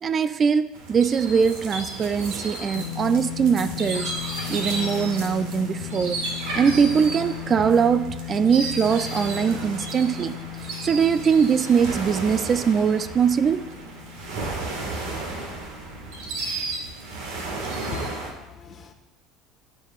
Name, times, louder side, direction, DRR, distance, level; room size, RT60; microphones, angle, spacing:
voice 1, 0.0-4.1 4.5-6.2 6.6-10.4 10.8-13.6, right 6 dB, 35° right, 13 dB, 0.3 m, -21 dB
sound 1, 0.7-18.3, right 3 dB, 70° right, 1.7 m, -33 dB
sound 2, 2.8-17.2, left 21 dB, 65° left, 0.5 m, -37 dB
voice 2, 17.9-18.9, left 5 dB, 40° left, 5 dB, 1.1 m, -39 dB
13.0 x 4.9 x 2.4 m, 0.99 s
hypercardioid pair, 80°, 0 cm